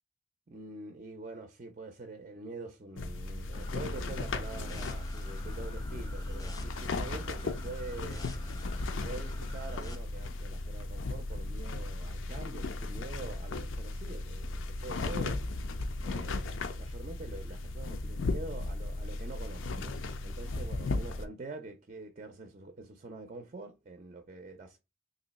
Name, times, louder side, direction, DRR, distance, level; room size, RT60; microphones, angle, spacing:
voice 1, 0.5-8.3 9.0-15.6 16.0-20.0 20.2-24.8, right 3 dB, 35° right, 0.5 m, -45 dB
sound 1, 3.0-21.2, left 2 dB, 80° left, 0.5 m, -36 dB
sound 2, 3.5-9.9, left 1 dB, 20° left, 0.5 m, -47 dB
3.0 x 2.7 x 4.0 m
head